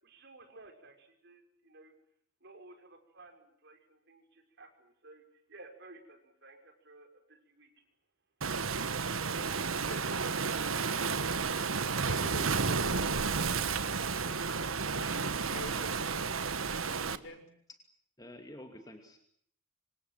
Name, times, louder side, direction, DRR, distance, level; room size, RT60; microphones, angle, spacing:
voice 1, 0.0-1.9 2.4-5.2 5.5-7.7, right 2 dB, 60° right, 6 dB, 6.0 m, -55 dB
Waves surf, 8.4-17.2, right 5 dB, 85° right, 1.4 m, -32 dB
voice 2, 9.8-10.4 11.8-14.5 14.8-17.5, left 2 dB, 65° left, 7 dB, 6.7 m, -49 dB
voice 3, 18.2-19.2, left 1 dB, 20° left, 4 dB, 2.6 m, -49 dB
26.5 x 26.5 x 7.6 m, 0.65 s
head